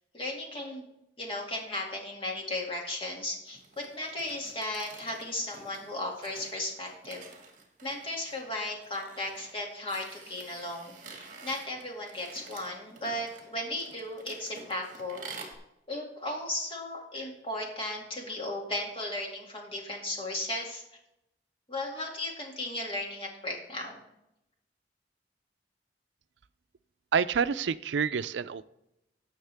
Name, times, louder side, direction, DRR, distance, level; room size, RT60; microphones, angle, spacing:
voice 1, 0.1-0.9 1.2-7.2 7.8-15.3 15.9-20.8 21.7-24.0, left 1 dB, 30° left, -1 dB, 2.2 m, -36 dB
sound 1, 3.5-15.5, right 4 dB, 45° right, 1.9 m, -49 dB
voice 2, 27.1-28.6, right 6 dB, 85° right, 14 dB, 0.4 m, -28 dB
17.5 x 6.5 x 3.4 m, 0.85 s
head